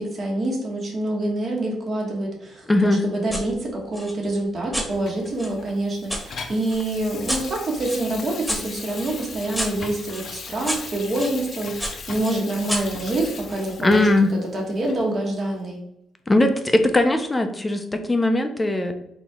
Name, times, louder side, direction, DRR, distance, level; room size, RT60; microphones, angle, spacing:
voice 1, 0.0-14.1 14.5-15.8, right 1 dB, 45° right, 0 dB, 1.4 m, -26 dB
voice 2, 2.7-3.0 13.8-14.3 16.3-18.9, left 2 dB, 15° left, 7 dB, 0.6 m, -19 dB
sound 1, 3.3-3.5 3.9-6.2 6.7-11.4 11.8-13.7, equal, ahead, 1.3 m, -32 dB
Water tap faucet / Sink (filling or washing), 5.1-14.3 14.8-15.0, left 5 dB, 55° left, 0.7 m, -38 dB
4.2 x 2.9 x 3.6 m, 0.83 s
cardioid pair, 90°, 0 cm